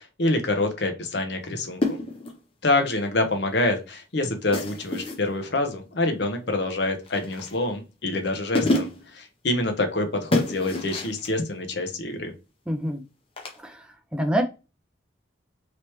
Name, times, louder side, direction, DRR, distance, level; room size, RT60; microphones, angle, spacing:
voice 1, 0.0-2.0 2.6-12.3, left 2 dB, 60° left, 0.8 m, -26 dB
sound 1, 1.8-2.4 4.5-5.3 7.1-7.7 8.2-8.3 8.5-9.1 10.3-11.3 13.4-13.6, left 2 dB, 30° left, 0.7 m, -27 dB
voice 2, 12.7-13.0 13.6-14.4, equal, 5° right, 0.3 m, -27 dB
3.1 x 3.0 x 3.0 m
head